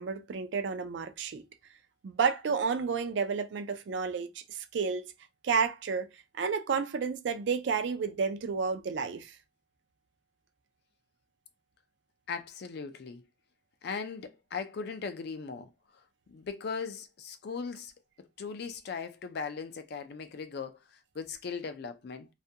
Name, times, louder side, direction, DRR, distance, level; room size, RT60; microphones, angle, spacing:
voice 1, 0.0-1.4 2.0-5.1 5.4-6.1 6.4-9.3, right 5 dB, 65° right, 0.4 m, -31 dB
voice 2, 12.3-13.3 13.8-15.7 16.3-17.9 18.2-22.3, left 5 dB, 55° left, 0.4 m, -39 dB
2.4 x 2.1 x 2.7 m
head